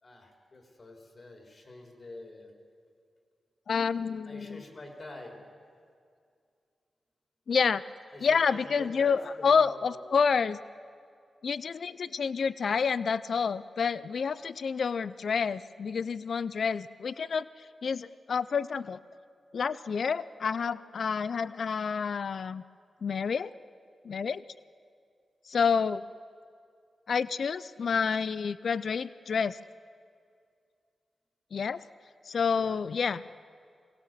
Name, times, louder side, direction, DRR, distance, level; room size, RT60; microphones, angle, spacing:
voice 1, 0.0-2.5 4.3-5.4 8.1-10.0 32.5-32.8, left 2 dB, 50° left, 2 dB, 4.0 m, -46 dB
voice 2, 3.7-4.6 7.5-7.8 8.2-10.6 11.4-19.0 19.5-22.6 23.0-23.5 24.0-24.4 25.5-26.0 27.1-29.6 31.5-31.8 32.3-33.2, left 6 dB, 70° left, 17 dB, 0.4 m, -29 dB
23.5 x 16.5 x 7.6 m, 2.3 s
cardioid pair, 50°, 0 cm